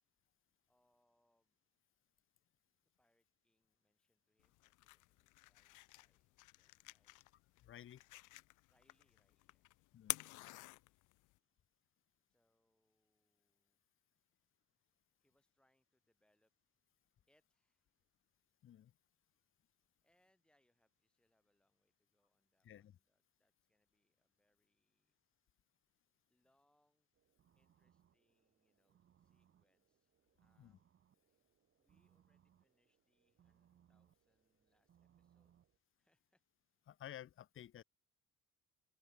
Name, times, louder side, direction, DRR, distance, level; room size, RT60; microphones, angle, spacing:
voice 1, 0.7-1.6 3.0-7.3 7.7-8.1 8.7-9.8 12.3-13.8 15.2-16.5 17.3-18.0 19.3-19.4 20.0-25.2 26.3-27.1 27.6-30.9 31.2-31.5 31.8-35.6 36.0-36.4, left 1 dB, 5° left, 5.3 m, -83 dB
sound 1, 4.4-11.4, left 19 dB, 70° left, 0.7 m, -50 dB
voice 2, 7.6-8.0 9.9-10.2 18.6-18.9 22.6-23.0 30.6-30.8 36.9-37.8, left 11 dB, 40° left, 0.9 m, -54 dB
sound 2, 27.1-35.8, right 9 dB, 40° right, 1.5 m, -74 dB
open air
cardioid pair, 120°, 31 cm